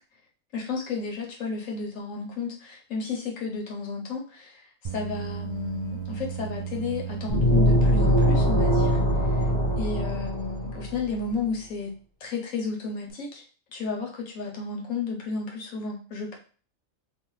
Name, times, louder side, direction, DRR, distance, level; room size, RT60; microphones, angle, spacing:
voice 1, 0.5-9.5 9.8-11.9 12.2-13.4 13.7-16.4, left 4 dB, 80° left, -1 dB, 1.1 m, -33 dB
sound 1, 4.8-9.8, right 8 dB, 70° right, 0.4 m, -35 dB
sound 2, 7.3-11.0, equal, 20° left, 0.8 m, -22 dB
4.0 x 2.1 x 3.0 m, 0.40 s
omnidirectional pair, 1.4 m